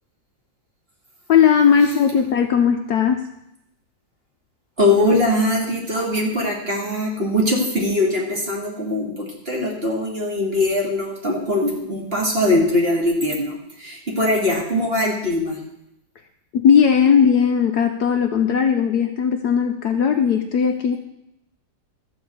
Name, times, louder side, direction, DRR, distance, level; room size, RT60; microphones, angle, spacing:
voice 1, 1.3-3.2 16.5-21.0, left 7 dB, 65° left, 6 dB, 1.1 m, -17 dB
voice 2, 4.8-15.6, left 1 dB, 30° right, -2 dB, 2.5 m, -21 dB
13.5 x 4.7 x 7.8 m, 0.82 s
omnidirectional pair, 2.1 m